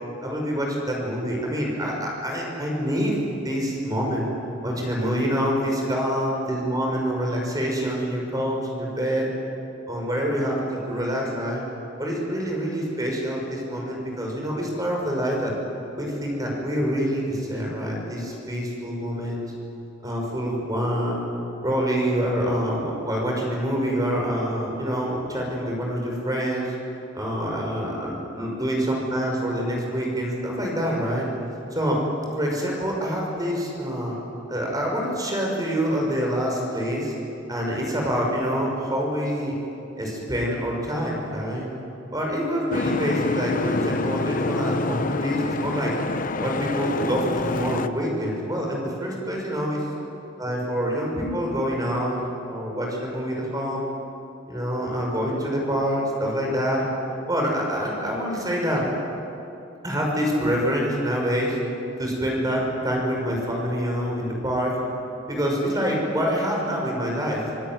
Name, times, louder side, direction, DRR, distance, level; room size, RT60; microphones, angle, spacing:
voice 1, 0.2-3.1 3.4-4.3 4.6-9.3 9.9-11.6 12.0-15.5 16.0-19.5 20.0-21.3 21.6-26.7 27.1-31.3 31.7-32.0 32.3-34.2 34.5-37.1 37.5-39.5 40.0-41.7 42.1-45.9 46.4-49.8 50.4-53.9 54.5-56.9 57.3-58.9 59.8-61.6 62.0-64.8 65.3-67.4, equal, 20° right, -1 dB, 6.1 m, -26 dB
Boat Water vehicle, 42.7-47.9, left 3 dB, 45° left, 0.9 m, -27 dB
26.5 x 18.5 x 9.3 m, 2.7 s
head